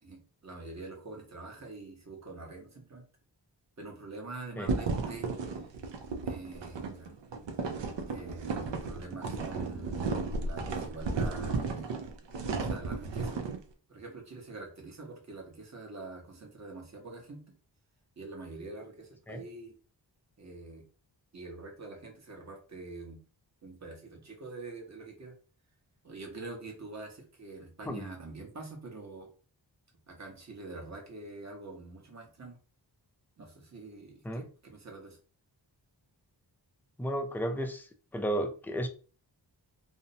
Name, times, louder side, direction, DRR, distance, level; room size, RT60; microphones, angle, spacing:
voice 1, 0.0-3.0 3.8-5.8 6.2-7.1 8.1-11.9 12.5-13.4 13.9-17.4 18.2-19.8 20.4-20.8 21.3-23.2 23.6-25.3 26.0-29.3 30.1-32.6 33.4-35.2, right 3 dB, 40° right, 0 dB, 0.9 m, -45 dB
sound 1, 4.7-13.6, right 4 dB, 75° right, 0.5 m, -34 dB
voice 2, 37.0-37.9 38.1-38.9, right 1 dB, 5° left, 5 dB, 0.3 m, -33 dB
2.6 x 2.0 x 2.6 m, 0.38 s
wide cardioid pair, 75°, 44 cm